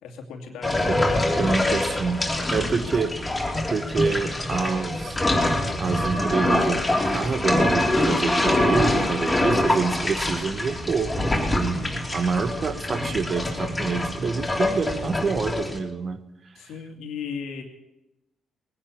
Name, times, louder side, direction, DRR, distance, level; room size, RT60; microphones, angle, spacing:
voice 1, 0.0-1.5 2.4-2.5 16.6-17.6, left 5 dB, 80° left, 3 dB, 2.5 m, -36 dB
sound 1, 0.6-15.8, left 1 dB, 15° left, 3.2 m, -24 dB
voice 2, 1.4-2.2 2.5-3.1 3.7-5.2 5.8-16.2, right 5 dB, 50° right, 11 dB, 1.3 m, -27 dB
20.0 x 10.0 x 7.1 m, 0.91 s
supercardioid pair, 65°, 0 cm